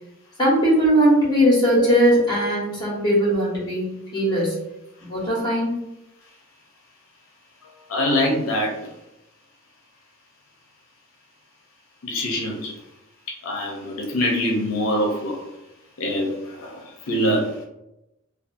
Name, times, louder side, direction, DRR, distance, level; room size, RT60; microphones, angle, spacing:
voice 1, 0.4-4.6 5.1-5.8, equal, 20° left, -7 dB, 1.1 m, -19 dB
voice 2, 7.9-8.8 12.0-12.7 13.4-15.4 16.0-17.6, equal, 80° left, 0 dB, 0.6 m, -24 dB
2.6 x 2.3 x 2.5 m, 0.91 s
head